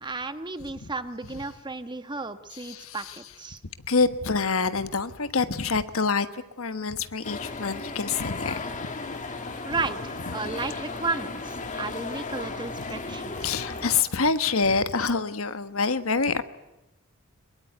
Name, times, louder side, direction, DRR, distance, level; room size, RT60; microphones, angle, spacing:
voice 1, 0.0-3.6 9.6-13.3, right 3 dB, 20° right, 10 dB, 1.2 m, -33 dB
voice 2, 2.6-3.1 3.9-8.6 13.1-13.2 13.4-16.4, left 4 dB, 80° left, 11 dB, 1.4 m, -26 dB
sound 1, 7.2-14.0, left 3 dB, 35° left, 2.0 m, -35 dB
22.5 x 22.5 x 9.4 m, 0.96 s
head